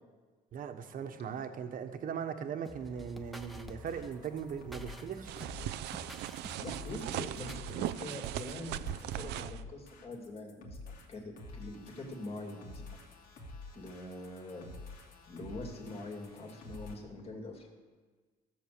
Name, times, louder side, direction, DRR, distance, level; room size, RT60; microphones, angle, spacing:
voice 1, 0.5-5.4, right 7 dB, 55° right, 7 dB, 1.3 m, -39 dB
sound 1, 2.6-7.7, left 1 dB, ahead, 1.0 m, -50 dB
sound 2, 3.6-17.0, left 2 dB, 60° left, 2.5 m, -49 dB
sound 3, 5.3-9.6, right 13 dB, 85° right, 0.6 m, -39 dB
voice 2, 6.6-13.0 13.7-14.7 15.3-17.7, left 1 dB, 35° left, 2 dB, 2.7 m, -44 dB
14.5 x 7.8 x 6.8 m, 1.4 s
cardioid pair, 110°, 17 cm